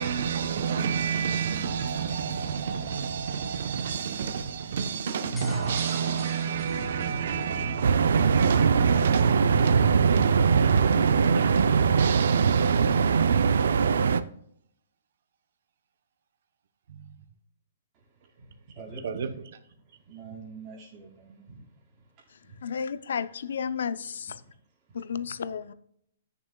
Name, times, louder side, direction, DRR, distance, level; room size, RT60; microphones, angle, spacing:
voice 1, 0.0-13.7 16.9-17.2 19.0-19.6, right 6 dB, 60° right, 0.9 m, -30 dB
sound 1, 5.1-7.6, left 3 dB, 5° left, 0.8 m, -48 dB
sound 2, 7.8-14.2, right 6 dB, 80° right, 0.5 m, -21 dB
voice 2, 17.9-19.1 19.8-22.8 24.4-24.6 24.9-25.4, right 4 dB, 25° right, 3.7 m, -48 dB
voice 3, 22.6-24.4 24.9-25.7, left 7 dB, 75° left, 0.6 m, -32 dB
14.5 x 6.9 x 2.3 m
hypercardioid pair, 170°, 0 cm